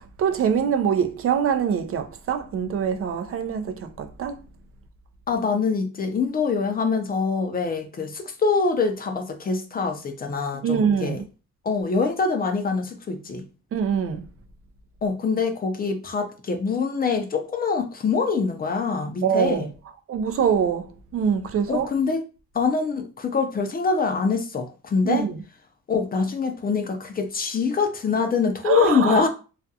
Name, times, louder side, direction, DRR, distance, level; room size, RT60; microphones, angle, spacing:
voice 1, 0.2-4.4 10.6-11.2 13.7-14.2 19.2-19.7 20.1-20.9 21.1-21.9 25.0-25.3 28.6-29.3, right 7 dB, 50° right, 0.4 m, -24 dB
voice 2, 5.3-11.2 11.6-13.4 15.0-19.7 21.7-22.2 22.5-25.3 25.9-29.3, left 5 dB, 30° left, 0.5 m, -24 dB
2.4 x 2.2 x 2.6 m
cardioid pair, 90°, 30 cm